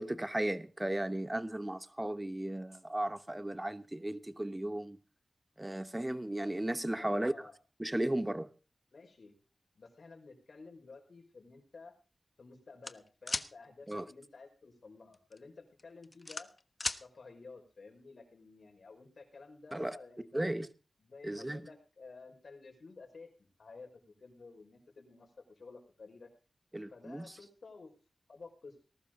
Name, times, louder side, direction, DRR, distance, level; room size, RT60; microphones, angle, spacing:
voice 1, 0.0-5.0 5.6-7.3 7.8-8.5 13.9-14.1 19.7-20.0 20.3-20.7 21.2-21.6 26.7-27.3, right 1 dB, 20° right, 1.1 m, -35 dB
voice 2, 6.9-7.5 8.9-9.3 9.7-11.9 12.4-16.5 17.0-20.5 21.0-26.3 26.9-27.9 28.3-28.8, left 4 dB, 70° left, 5.1 m, -53 dB
sound 1, 12.8-13.5 15.1-15.4 15.8-17.0, left 2 dB, 35° left, 1.2 m, -36 dB
19.5 x 12.0 x 3.9 m
cardioid pair, 50°, 0 cm